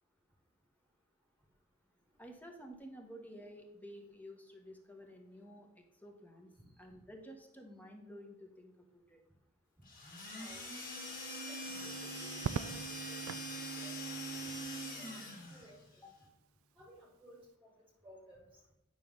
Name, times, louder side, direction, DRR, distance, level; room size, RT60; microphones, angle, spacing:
voice 1, 2.2-5.7 5.9-6.5 6.8-9.2 16.0-16.1, equal, 10° left, 2 dB, 1.3 m, -52 dB
sound 1, 9.8-15.7, right 1 dB, 45° left, 2.2 m, -43 dB
voice 2, 11.4-13.2 13.5-16.1 16.8-17.7 18.0-18.6, equal, 10° right, -2 dB, 1.6 m, -58 dB
Bowed string instrument, 11.6-16.5, equal, 80° left, 2.1 m, -55 dB
Crackle, 12.4-13.5 15.1-15.7, right 6 dB, 90° right, 0.3 m, -40 dB
9.4 x 5.9 x 3.9 m, 0.91 s
head